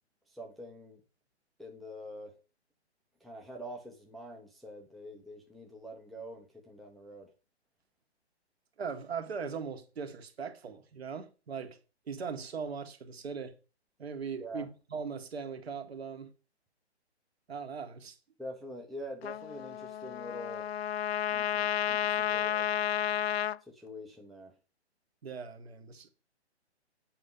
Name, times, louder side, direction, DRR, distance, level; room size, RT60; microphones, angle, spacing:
voice 1, 0.3-1.0 1.6-2.3 3.2-7.3 14.4-14.7 18.4-20.7 21.3-22.7 23.7-24.5, equal, ahead, 0.6 m, -45 dB
voice 2, 8.8-11.8 12.1-13.5 14.0-16.3 17.5-18.2 25.2-26.1, right 6 dB, 65° right, 1.8 m, -39 dB
Trumpet, 19.2-23.6, left 9 dB, 65° left, 0.4 m, -32 dB
8.3 x 4.5 x 5.4 m
figure-of-eight pair, 140°, 34 cm